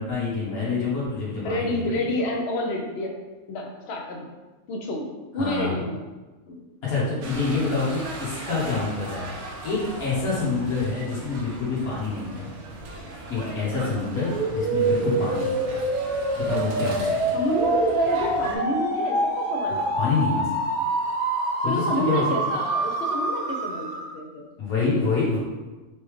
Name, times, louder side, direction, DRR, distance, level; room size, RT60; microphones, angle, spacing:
voice 1, 0.0-2.0 5.4-5.7 6.8-12.5 13.3-15.7 16.4-17.3 19.7-20.6 21.6-22.2 24.6-25.4, left 4 dB, 85° left, -7 dB, 1.6 m, -27 dB
voice 2, 1.4-3.2 3.5-4.3 4.7-5.1 5.3-6.0 6.5-6.6 13.4-13.7 15.0-15.2 17.3-19.9 21.7-23.9 24.1-24.5, left 1 dB, 60° left, 1 dB, 0.8 m, -28 dB
sound 1, 7.2-18.6, right 2 dB, 65° right, 0.9 m, -38 dB
sound 2, 14.3-24.2, right 2 dB, 85° right, 1.3 m, -26 dB
4.1 x 3.5 x 3.1 m, 1.2 s
omnidirectional pair, 1.5 m